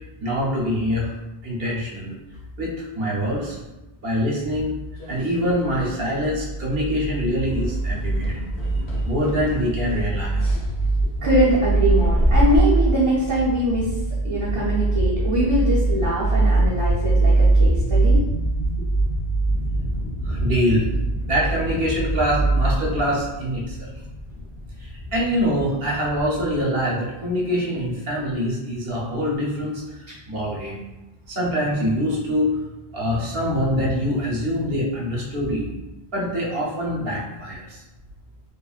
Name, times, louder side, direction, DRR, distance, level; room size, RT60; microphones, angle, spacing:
voice 1, 0.2-1.1 1.4-2.2 2.6-3.6 4.0-4.7 5.1-8.7 9.0-10.6 20.2-20.9 21.2-23.9 24.8-30.8 31.3-32.6 32.9-35.7 36.1-37.8, equal, 65° right, -4 dB, 1.0 m, -24 dB
sound 1, 4.5-6.0 6.2-6.6 6.9-7.1 7.5-12.6, equal, 90° left, 1.0 m, -28 dB
sound 2, 5.6-22.8, right 2 dB, 65° left, 1.2 m, -22 dB
sound 3, 7.5-26.7, left 1 dB, 45° left, 0.7 m, -37 dB
voice 2, 11.2-13.9 14.2-18.2, equal, 40° right, -9 dB, 0.6 m, -22 dB
3.4 x 2.1 x 2.4 m, 1.0 s
omnidirectional pair, 1.1 m